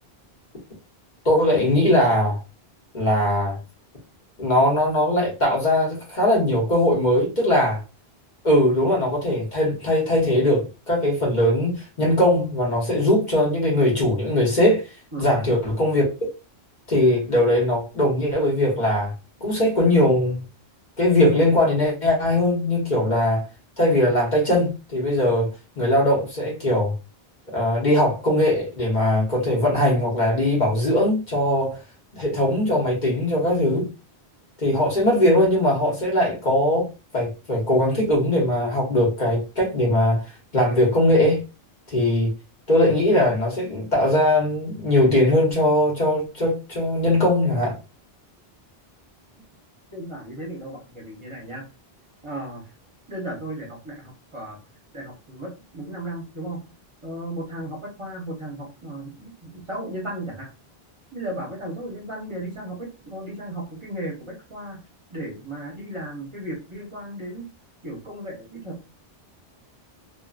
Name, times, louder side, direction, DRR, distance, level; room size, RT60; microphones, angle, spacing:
voice 1, 1.2-2.4 2.9-3.6 4.4-7.8 8.4-14.8 15.2-16.0 16.9-19.1 19.4-20.4 21.0-23.4 23.8-25.5 25.8-26.9 27.5-31.8 32.1-33.9 34.6-36.9 37.1-40.2 40.5-41.4 41.9-42.3 42.7-47.7, left 1 dB, 45° left, 1.0 m, -20 dB
voice 2, 49.9-51.6 52.2-52.7 53.1-54.6 54.9-56.6 57.0-60.5 61.1-64.8 65.1-67.5 67.8-68.8, right 1 dB, 30° right, 0.8 m, -35 dB
2.5 x 2.5 x 2.3 m
omnidirectional pair, 1.1 m